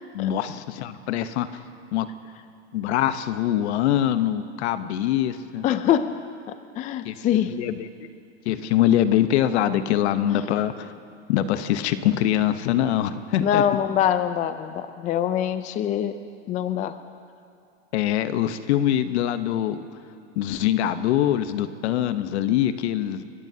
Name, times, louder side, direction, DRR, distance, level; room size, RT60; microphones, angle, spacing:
voice 1, 0.1-1.5 1.9-2.1 2.7-5.6 7.0-7.1 7.5-7.9 8.5-10.9 11.3-13.6 17.9-19.8 20.4-23.3, left 11 dB, 65° left, 11 dB, 1.0 m, -23 dB
voice 2, 5.6-6.1 6.8-7.6 10.3-10.6 13.4-16.1 16.5-17.0, left 10 dB, 20° left, 10 dB, 0.5 m, -24 dB
29.5 x 15.0 x 2.8 m, 2.5 s
hypercardioid pair, 125°, 36 cm